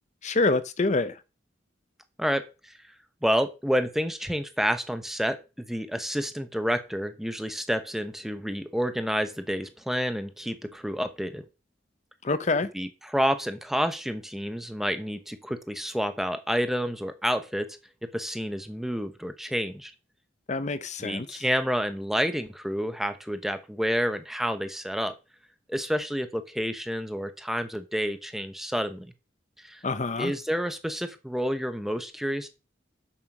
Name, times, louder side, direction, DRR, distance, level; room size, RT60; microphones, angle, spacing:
voice 1, 0.2-1.2 12.2-12.7 20.5-21.4 29.8-30.3, left 3 dB, 40° left, 0.7 m, -26 dB
voice 2, 2.2-2.8 3.2-5.4 5.7-11.4 12.7-17.7 18.0-19.9 21.0-25.1 25.7-29.1 29.6-29.8 30.2-32.5, equal, ahead, 0.9 m, -29 dB
7.4 x 7.1 x 6.0 m
head